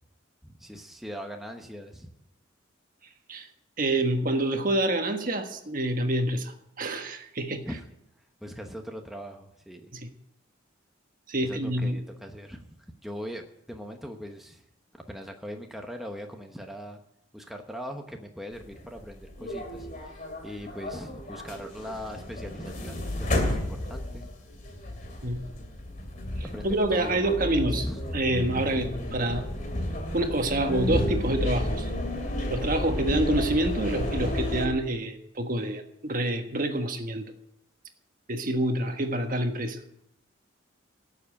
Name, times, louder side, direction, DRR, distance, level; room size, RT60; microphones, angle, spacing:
voice 1, 0.4-2.1 7.6-7.8 8.4-9.9 11.4-14.6 14.9-17.0 17.3-24.3 26.5-28.0, equal, ahead, 2 dB, 1.1 m, -40 dB
voice 2, 3.8-7.7 9.9-10.1 11.3-12.0 25.2-25.4 26.4-27.9 28.1-29.5 30.1-31.9 32.5-37.3 38.3-39.8, right 1 dB, 45° right, 6 dB, 1.4 m, -27 dB
sound 1, 18.5-34.7, left 1 dB, 40° left, 2.7 m, -32 dB
17.0 x 7.3 x 8.7 m, 0.80 s
head